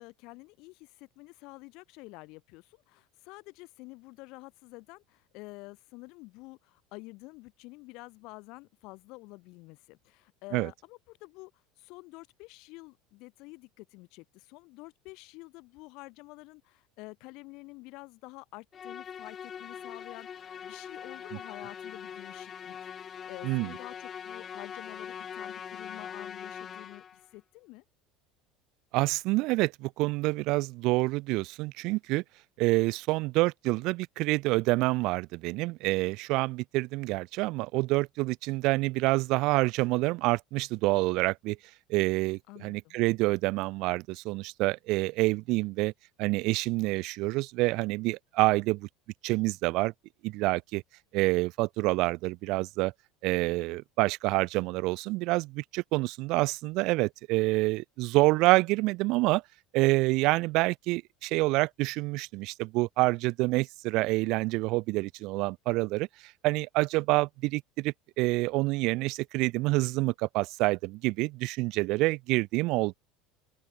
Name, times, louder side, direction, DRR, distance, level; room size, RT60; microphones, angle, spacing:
voice 1, 0.0-27.8 42.5-43.0, left 24 dB, 65° left, 6.6 m, -49 dB
Musical instrument, 18.7-27.3, left 8 dB, 35° left, 1.2 m, -42 dB
voice 2, 28.9-32.2 32.6-41.6 41.9-45.9 46.2-48.9 49.2-49.9 50.2-50.8 51.1-52.9 53.2-59.4 59.7-72.9, right 22 dB, 65° right, 0.3 m, -27 dB
open air
supercardioid pair, 90°, 0 cm